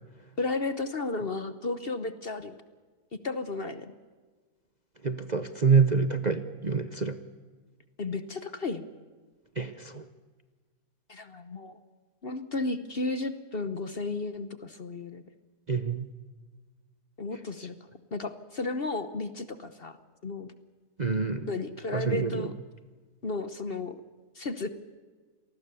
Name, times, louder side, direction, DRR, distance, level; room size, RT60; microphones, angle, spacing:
voice 1, 0.4-2.5 3.2-3.9 8.0-8.9 11.1-11.8 12.2-15.2 17.2-17.8 18.1-20.0 20.2-20.5 21.5-22.5 23.2-24.0 24.3-24.7, left 3 dB, 40° left, 11 dB, 1.1 m, -33 dB
voice 2, 5.0-7.2 9.6-10.1 15.7-16.1 17.6-17.7 21.0-21.5 21.9-22.5, right 5 dB, 35° right, 9 dB, 0.8 m, -26 dB
27.5 x 19.5 x 7.0 m, 1.4 s
omnidirectional pair, 1.7 m